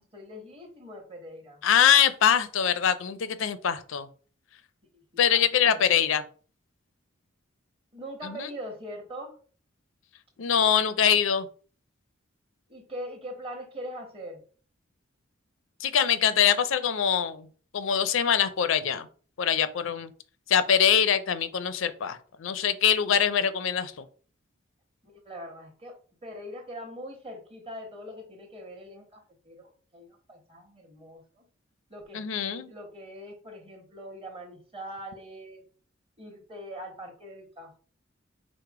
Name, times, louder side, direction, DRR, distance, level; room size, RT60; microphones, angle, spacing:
voice 1, 0.0-1.6 4.9-5.0 5.3-6.0 7.9-9.3 12.7-14.4 25.0-31.4 31.9-35.6 36.2-37.8, equal, 30° right, 2 dB, 1.2 m, -42 dB
voice 2, 1.6-4.1 5.2-6.2 8.2-8.5 10.4-11.5 15.8-17.5 17.7-19.1 19.4-20.1 20.5-24.0 32.1-32.7, left 8 dB, 70° left, 13 dB, 0.5 m, -23 dB
4.8 x 2.1 x 4.6 m, 0.42 s
head